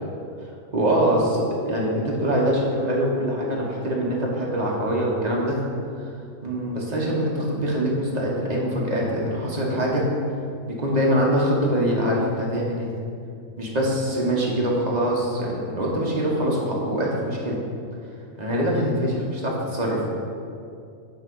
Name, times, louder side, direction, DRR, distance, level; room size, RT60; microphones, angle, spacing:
voice 1, 0.7-5.6 5.9-6.1 6.4-10.0 10.7-12.9 13.6-17.6 18.4-20.1, equal, 35° right, -3 dB, 1.2 m, -24 dB
9.2 x 3.2 x 5.4 m, 2.4 s
omnidirectional pair, 1.4 m